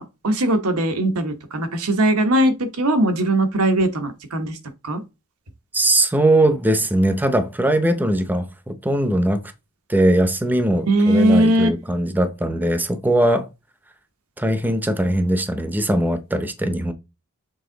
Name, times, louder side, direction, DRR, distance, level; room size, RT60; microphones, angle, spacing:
voice 1, 0.0-4.6 4.8-5.0 10.9-11.7, right 1 dB, 90° right, 1.2 m, -19 dB
voice 2, 5.7-9.4 9.9-13.5 14.4-16.9, right 1 dB, 10° right, 0.6 m, -20 dB
7.1 x 3.6 x 3.9 m
head